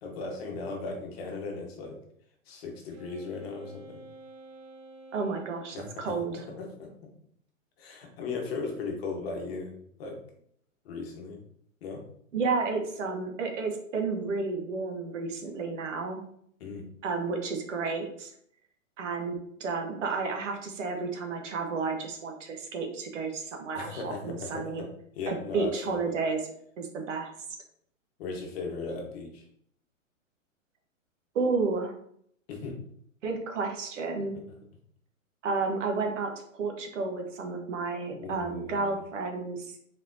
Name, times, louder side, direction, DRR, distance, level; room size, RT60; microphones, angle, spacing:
voice 1, 0.0-2.0 2.5-4.0 5.7-6.1 6.5-6.9 7.8-9.7 10.0-10.2 10.8-11.4 11.8-12.0 16.6-16.8 23.7-24.9 25.1-26.2 28.2-29.4 32.5-32.8 38.1-39.0, left 4 dB, 45° left, 2 dB, 1.2 m, -37 dB
Wind instrument woodwind instrument, 2.9-5.8, right 1 dB, 25° right, 0.4 m, -49 dB
voice 2, 5.1-6.4 12.3-16.2 17.0-18.3 19.0-24.9 25.3-27.3 31.3-31.9 33.2-34.3 35.4-39.7, right 4 dB, 60° right, 3 dB, 1.1 m, -31 dB
4.1 x 4.0 x 2.6 m, 0.66 s
hypercardioid pair, 135°, 40 cm